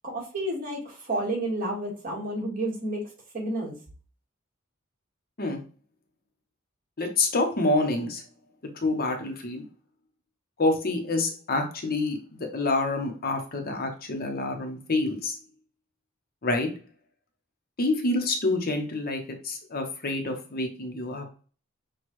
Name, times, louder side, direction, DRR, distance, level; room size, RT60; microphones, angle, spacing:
voice 1, 0.0-3.0 3.3-3.7, right 1 dB, 45° right, -2 dB, 1.8 m, -30 dB
voice 2, 7.0-8.2 8.7-9.6 10.6-15.4 16.4-16.7 17.8-21.2, left 2 dB, 45° left, 4 dB, 0.8 m, -27 dB
6.1 x 2.3 x 3.1 m, 0.38 s
head